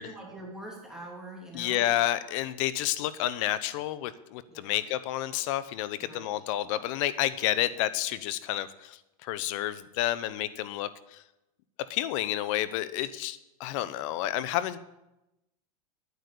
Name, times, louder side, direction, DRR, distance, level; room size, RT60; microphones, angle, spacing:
voice 1, 0.0-1.9 4.5-4.8 6.0-6.3, right 1 dB, 5° right, -3 dB, 3.1 m, -44 dB
voice 2, 1.5-11.2 11.9-14.8, left 13 dB, 60° left, 15 dB, 0.9 m, -30 dB
9.4 x 9.2 x 8.2 m, 0.92 s
hypercardioid pair, 115°, 19 cm